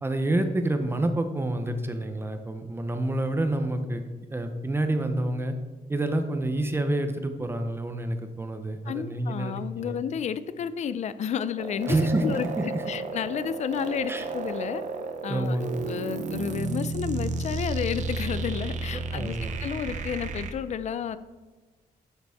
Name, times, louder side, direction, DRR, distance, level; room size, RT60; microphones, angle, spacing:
voice 1, 0.0-4.0 4.3-5.5 5.9-10.0 11.9-12.8 14.1-14.3 15.3-15.8 19.1-19.6, right 1 dB, 15° right, 7 dB, 0.6 m, -28 dB
voice 2, 8.9-12.0 12.2-14.8 15.2-15.6 15.9-21.2, left 8 dB, 50° left, 14 dB, 0.4 m, -31 dB
sound 1, 11.6-20.5, right 4 dB, 55° right, 0.7 m, -32 dB
10.5 x 6.6 x 3.5 m, 1.3 s
wide cardioid pair, 170°, 15 cm